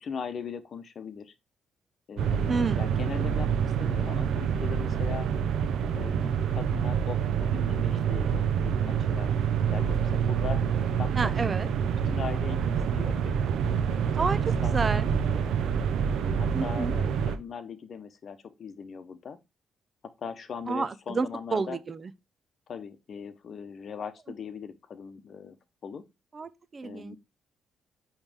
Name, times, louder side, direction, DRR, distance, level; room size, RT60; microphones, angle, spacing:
voice 1, 0.0-1.3 2.1-5.3 5.9-9.3 9.7-10.6 11.0-11.5 12.0-13.3 13.9-14.1 14.6-15.5 16.0-19.4 20.2-21.8 22.7-25.6 25.8-26.0 26.8-27.2, left 6 dB, 50° left, 0.9 m, -40 dB
sound 1, 2.2-17.4, right 7 dB, 75° right, 0.7 m, -27 dB
voice 2, 2.5-2.8 11.2-11.7 14.2-15.1 16.5-16.9 20.7-22.1 26.3-27.2, right 4 dB, 35° right, 0.4 m, -30 dB
8.6 x 3.2 x 3.5 m
cardioid pair, 90°, 0 cm